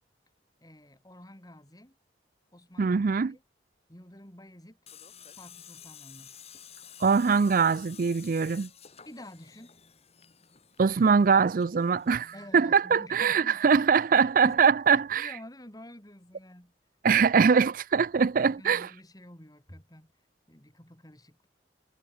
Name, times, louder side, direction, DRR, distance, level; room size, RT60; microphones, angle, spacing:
voice 1, 0.6-2.0 2.5-3.4 3.9-4.8 5.4-6.4 9.0-9.8 12.3-13.9 14.2-16.7 18.5-20.1 20.5-21.5, left 1 dB, 20° left, 5.3 m, -49 dB
voice 2, 2.8-3.3 7.0-8.7 10.8-15.3 17.0-18.9, right 6 dB, 50° right, 0.4 m, -23 dB
Tools, 4.9-12.6, left 8 dB, 35° left, 3.8 m, -51 dB
head